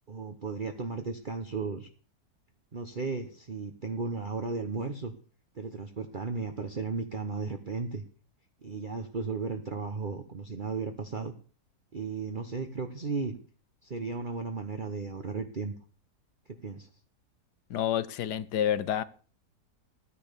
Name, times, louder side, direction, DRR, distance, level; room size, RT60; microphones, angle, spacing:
voice 1, 0.1-1.9 2.7-5.1 5.5-8.0 8.6-11.3 11.9-13.4 13.8-15.7 16.5-16.9, right 4 dB, 35° right, 1.2 m, -35 dB
voice 2, 17.7-19.0, left 10 dB, 90° left, 1.5 m, -28 dB
14.5 x 9.9 x 6.9 m
omnidirectional pair, 1.7 m